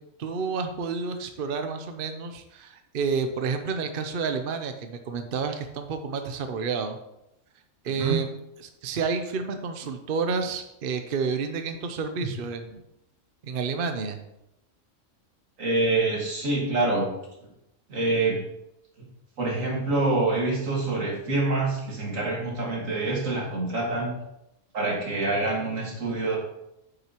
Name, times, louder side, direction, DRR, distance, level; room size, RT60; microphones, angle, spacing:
voice 1, 0.0-7.0 7.8-8.3 8.8-12.8 13.4-14.2, right 5 dB, 50° right, 7 dB, 0.8 m, -30 dB
voice 2, 7.9-8.2 15.6-17.1 17.9-18.4 19.4-24.2 24.7-26.4, right 2 dB, 80° right, -2 dB, 2.3 m, -26 dB
8.9 x 6.6 x 3.0 m, 0.86 s
omnidirectional pair, 1.3 m